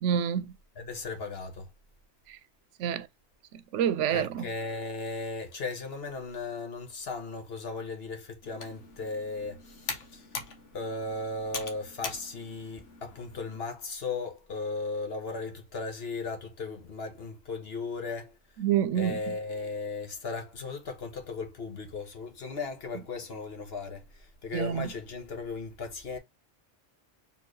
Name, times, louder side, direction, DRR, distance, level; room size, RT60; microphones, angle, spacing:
voice 1, 0.0-0.5 2.8-3.1 3.7-4.5 18.6-19.3 24.5-24.9, right 9 dB, 85° right, 0.9 m, -27 dB
voice 2, 0.8-1.7 4.1-10.3 10.7-18.3 18.9-26.2, left 3 dB, 60° left, 1.4 m, -36 dB
Computer keyboard, 8.4-13.6, left 5 dB, 80° left, 1.4 m, -42 dB
4.5 x 3.6 x 3.1 m
omnidirectional pair, 1.2 m